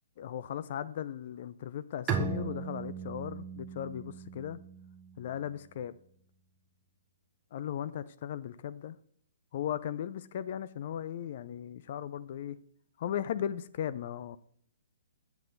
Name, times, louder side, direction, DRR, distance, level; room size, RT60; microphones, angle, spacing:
voice 1, 0.2-4.6 5.2-5.9 7.5-9.0 9.5-12.6 13.0-14.4, left 10 dB, 50° left, 0.4 m, -37 dB
Bowed string instrument, 2.1-5.6, right 5 dB, 20° right, 1.1 m, -37 dB
7.7 x 6.9 x 3.9 m
hypercardioid pair, 135°, 0 cm